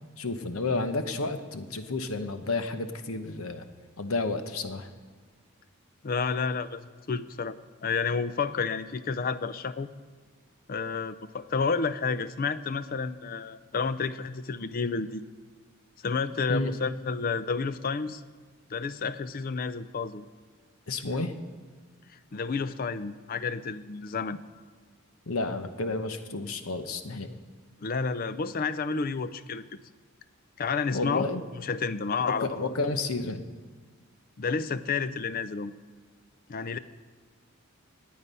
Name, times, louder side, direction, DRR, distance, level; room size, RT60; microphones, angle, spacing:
voice 1, 0.2-3.6 4.0-4.9 16.5-16.7 20.9-21.3 25.3-27.3 30.9-31.4 32.4-33.4, left 3 dB, 75° left, 9 dB, 1.0 m, -31 dB
voice 2, 6.0-7.6 7.8-9.9 10.7-15.2 16.0-18.2 18.7-20.3 22.3-24.4 27.8-29.6 30.6-31.3 31.6-32.7 34.4-35.7 36.5-36.8, left 5 dB, 40° left, 14 dB, 0.5 m, -30 dB
19.0 x 8.7 x 5.5 m, 1.5 s
head